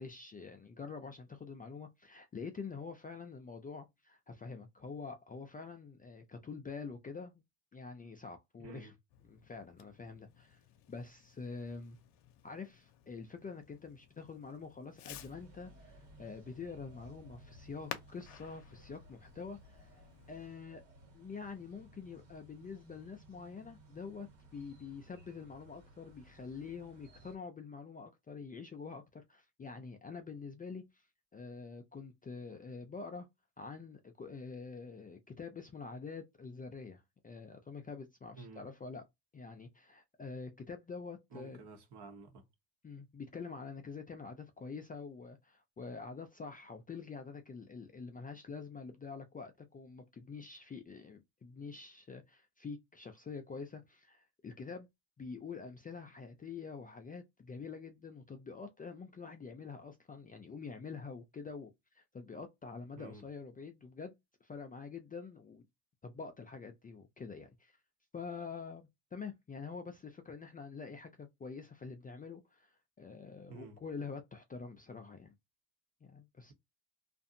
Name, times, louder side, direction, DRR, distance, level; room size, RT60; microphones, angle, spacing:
voice 1, 0.0-7.4 7.7-8.9 9.2-10.6 10.9-12.0 12.4-20.8 21.1-24.3 24.5-31.1 31.3-33.3 33.6-39.0 39.3-41.6 42.8-54.9 55.2-64.1 64.4-65.6 66.0-67.8 68.1-75.3 76.0-76.5, left 5 dB, 20° left, 0.4 m, -46 dB
voice 2, 8.6-8.9 16.1-16.3 38.3-38.7 41.3-42.4 62.9-63.2 73.5-73.8, right 3 dB, 55° right, 1.3 m, -51 dB
Fireworks, 9.1-20.5, left 11 dB, 60° left, 0.7 m, -54 dB
sound 1, 15.1-27.4, right 2 dB, 70° right, 1.4 m, -59 dB
2.5 x 2.5 x 2.6 m
hypercardioid pair, 70°, 47 cm